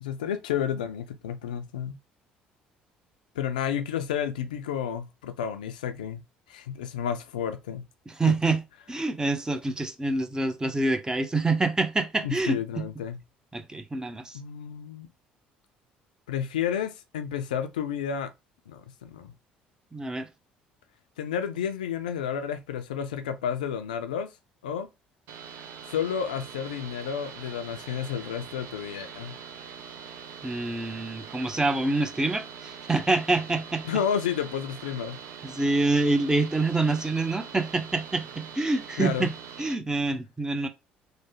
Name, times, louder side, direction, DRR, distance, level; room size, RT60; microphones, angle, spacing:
voice 1, 0.0-2.0 3.4-6.2 6.5-7.8 8.2-8.4 12.2-13.2 14.3-15.1 16.3-18.3 18.7-19.3 21.2-24.3 24.6-24.9 25.9-29.3 33.8-35.2 39.0-39.3, left 8 dB, 85° left, 0.3 m, -31 dB
voice 2, 8.1-8.6 8.9-12.8 13.5-14.4 19.9-20.3 30.4-33.8 35.4-39.3 39.6-40.7, right 3 dB, 15° right, 0.7 m, -26 dB
sound 1, 25.3-39.7, right 7 dB, 70° right, 0.5 m, -43 dB
3.2 x 2.1 x 3.0 m
hypercardioid pair, 60°, 4 cm